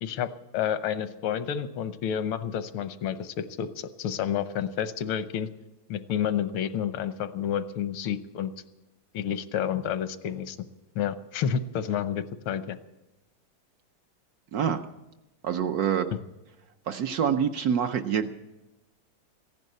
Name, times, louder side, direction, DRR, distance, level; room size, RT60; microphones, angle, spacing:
voice 1, 0.0-5.5 5.9-8.5 9.1-10.6 10.9-12.8, left 9 dB, 85° left, 12 dB, 1.6 m, -30 dB
voice 2, 14.5-14.8 15.4-16.1 16.9-18.3, right 8 dB, 70° right, 8 dB, 0.9 m, -26 dB
15.5 x 11.0 x 8.1 m, 1.0 s
omnidirectional pair, 2.2 m